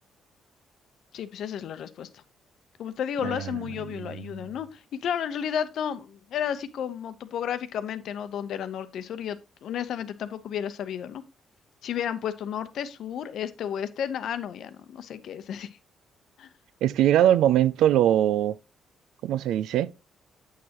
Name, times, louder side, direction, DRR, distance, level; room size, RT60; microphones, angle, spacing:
voice 1, 1.1-2.2 2.8-11.2 11.8-15.7 16.4-16.5, left 9 dB, 70° left, 0.8 m, -32 dB
voice 2, 3.8-4.2 16.8-18.6 19.2-19.9, right 11 dB, 85° right, 0.3 m, -22 dB
8.2 x 6.5 x 2.9 m
cardioid pair, 90°, 0 cm